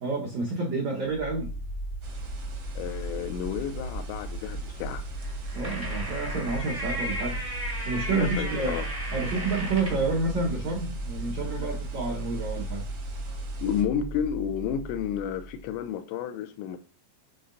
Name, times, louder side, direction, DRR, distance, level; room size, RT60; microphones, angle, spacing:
voice 1, 0.0-1.5 5.5-7.4 7.8-8.8 9.1-12.8, right 3 dB, 85° right, 1.5 m, -29 dB
sound 1, 1.0-15.8, equal, 65° left, 2.1 m, -36 dB
sound 2, 2.0-13.8, right 8 dB, 65° right, 1.5 m, -44 dB
voice 2, 2.8-5.0 8.1-8.9 13.6-16.8, left 9 dB, 85° left, 2.8 m, -31 dB
sound 3, 5.2-10.1, right 1 dB, 30° right, 0.7 m, -35 dB
9.4 x 3.9 x 2.6 m
omnidirectional pair, 5.2 m